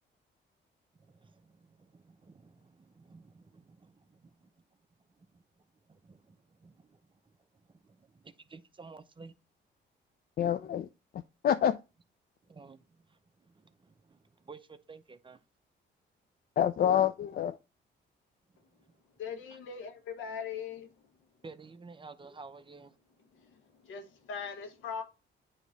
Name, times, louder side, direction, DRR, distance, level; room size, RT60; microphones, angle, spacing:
voice 1, 1.0-4.5 5.2-5.4 5.9-7.0 7.7-9.3 12.4-12.8 13.1-15.4 21.4-23.0, right 4 dB, 25° right, 0.7 m, -53 dB
voice 2, 10.4-10.9 11.1-11.8 16.6-17.6, left 9 dB, 50° left, 0.4 m, -27 dB
voice 3, 19.2-20.9 23.4-25.0, left 6 dB, 85° left, 1.4 m, -40 dB
9.0 x 3.1 x 4.0 m
cardioid pair, 90°, 20 cm